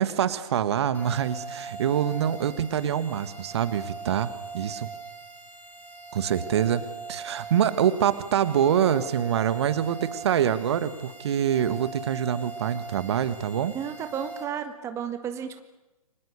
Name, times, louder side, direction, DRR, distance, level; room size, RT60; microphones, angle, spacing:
voice 1, 0.0-4.9 6.1-6.8 7.1-13.8, right 9 dB, 45° right, 13 dB, 1.8 m, -25 dB
sound 1, 0.9-14.5, right 4 dB, 10° left, 4.5 m, -41 dB
voice 2, 13.7-15.6, right 8 dB, 15° right, 8 dB, 1.5 m, -33 dB
29.5 x 25.5 x 6.8 m, 1.1 s
figure-of-eight pair, 125°, 19 cm